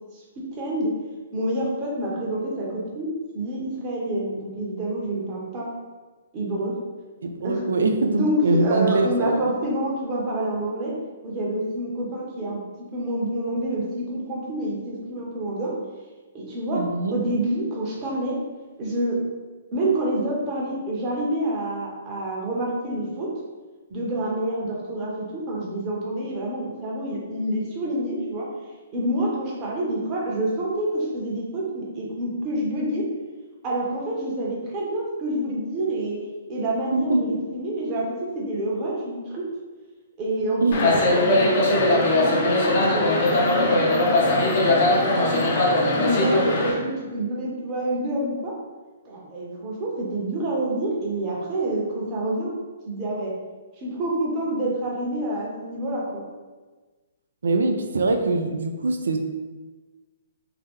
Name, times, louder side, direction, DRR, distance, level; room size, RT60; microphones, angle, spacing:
voice 1, 0.5-0.9 1.3-5.7 6.3-6.7 7.4-7.6 8.1-10.9 11.2-12.6 12.9-15.7 16.3-16.8 17.1-18.4 18.8-19.2 19.7-23.3 23.9-28.5 28.9-33.0 33.6-36.2 36.5-39.4 40.2-45.3 46.0-48.5 49.0-52.5 52.9-53.3 53.8-56.2, right 1 dB, 30° right, -4 dB, 0.9 m, -27 dB
voice 2, 7.2-9.4 16.7-17.1 36.9-37.4 40.6-40.8 57.4-59.2, right 2 dB, 80° right, 5 dB, 0.3 m, -23 dB
sound 1, 40.7-46.7, left 2 dB, 55° left, 0.7 m, -20 dB
2.9 x 2.2 x 3.5 m, 1.3 s
hypercardioid pair, 130°, 0 cm